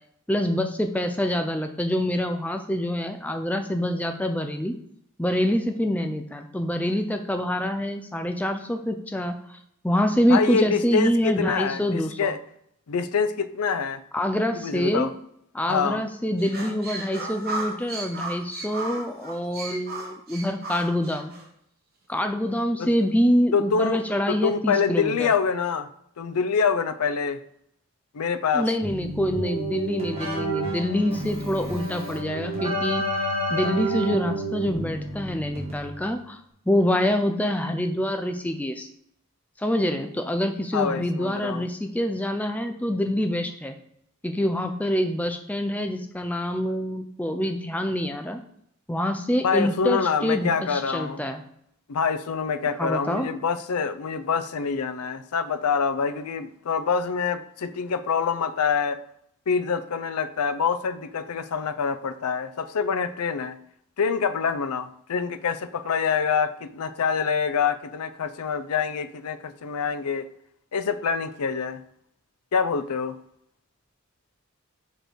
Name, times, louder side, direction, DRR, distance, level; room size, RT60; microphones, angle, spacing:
voice 1, 0.3-4.7 5.2-9.6 9.8-12.3 14.1-15.1 15.5-21.3 22.1-25.3 28.5-36.4 36.7-38.9 39.6-43.7 44.2-48.4 48.9-51.4 52.8-53.3, equal, 5° left, 0.4 m, -26 dB
voice 2, 10.3-12.4 12.9-14.0 14.5-15.1 15.7-16.0 22.8-22.9 23.5-25.9 26.2-27.4 28.1-28.7 40.7-41.6 49.4-51.2 51.9-59.0 59.5-63.6 64.0-70.3 70.7-71.8 72.5-73.2, left 5 dB, 90° left, 0.5 m, -26 dB
sound 1, 16.4-21.4, right 3 dB, 45° right, 1.2 m, -35 dB
Keyboard (musical), 28.8-36.1, right 1 dB, 25° right, 1.8 m, -30 dB
4.6 x 4.4 x 5.1 m
head